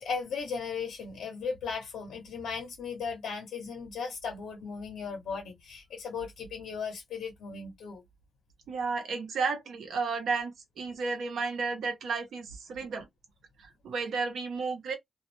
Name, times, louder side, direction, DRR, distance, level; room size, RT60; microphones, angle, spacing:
voice 1, 0.0-8.0, left 5 dB, 90° left, 0.8 m, -37 dB
voice 2, 8.7-13.1 13.6-14.9, right 4 dB, 90° right, 0.8 m, -32 dB
2.3 x 2.1 x 3.0 m
wide cardioid pair, 120°, 0 cm